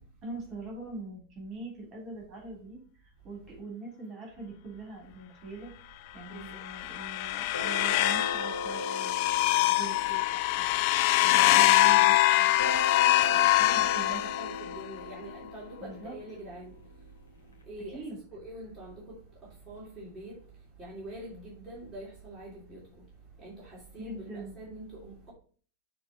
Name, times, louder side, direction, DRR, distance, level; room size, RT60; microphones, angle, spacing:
voice 1, 0.2-5.7 6.1-10.8 11.2-12.5 13.5-14.2 14.7-14.8 15.8-16.2 17.9-18.2 24.0-24.6, right 3 dB, 30° right, 3.2 m, -43 dB
sound 1, 6.5-14.8, left 17 dB, 45° left, 0.3 m, -24 dB
sound 2, 7.5-11.9 12.6-17.5, left 3 dB, 75° left, 1.8 m, -39 dB
voice 2, 11.3-11.7 13.3-16.7 17.7-18.0 18.3-18.9 19.7-20.3 20.8-22.8 23.4-25.3, right 1 dB, 10° right, 2.7 m, -44 dB
6.9 x 3.3 x 5.0 m
figure-of-eight pair, 90°, 0 cm